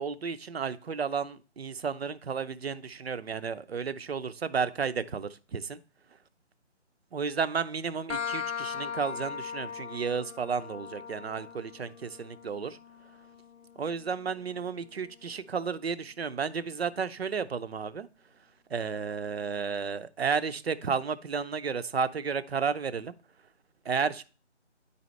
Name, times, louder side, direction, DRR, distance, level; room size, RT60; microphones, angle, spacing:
voice 1, 0.0-5.8 7.1-12.8 13.8-18.1 18.7-23.2 23.9-24.2, right 6 dB, 60° right, 0.5 m, -32 dB
sound 1, 8.1-15.5, left 7 dB, 80° left, 0.6 m, -40 dB
10.0 x 4.1 x 3.1 m
figure-of-eight pair, 165°, 36 cm